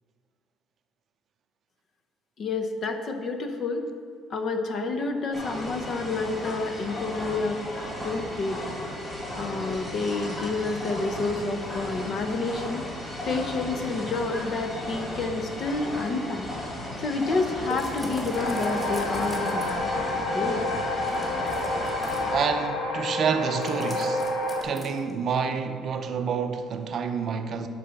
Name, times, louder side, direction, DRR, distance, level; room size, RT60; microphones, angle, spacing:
voice 1, 2.4-3.9 4.3-7.6 8.0-8.6 9.4-12.9 13.3-16.5 17.0-19.8 20.3-20.6, left 3 dB, 45° left, 0.8 m, -29 dB
sound 1, 5.3-22.3, left 1 dB, 15° left, 2.5 m, -35 dB
sound 2, 17.7-19.9 21.1-22.4 23.6-25.1, right 1 dB, ahead, 1.2 m, -39 dB
sound 3, 18.3-24.6, left 2 dB, 75° left, 1.3 m, -29 dB
voice 2, 22.3-24.2 24.6-27.7, right 6 dB, 45° right, 0.6 m, -28 dB
11.5 x 4.2 x 5.8 m
cardioid pair, 145°, 0 cm